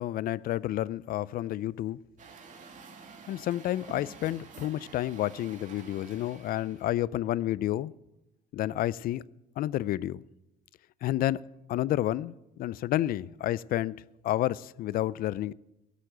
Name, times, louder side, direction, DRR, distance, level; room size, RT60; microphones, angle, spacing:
voice 1, 0.0-2.0 3.3-7.9 8.5-9.2 9.6-10.2 11.0-11.4 11.7-15.5, left 13 dB, 60° left, 0.4 m, -30 dB
Truck, 2.2-7.0, right 5 dB, 50° right, 2.3 m, -49 dB
12.5 x 8.3 x 7.8 m
cardioid pair, 110°, 17 cm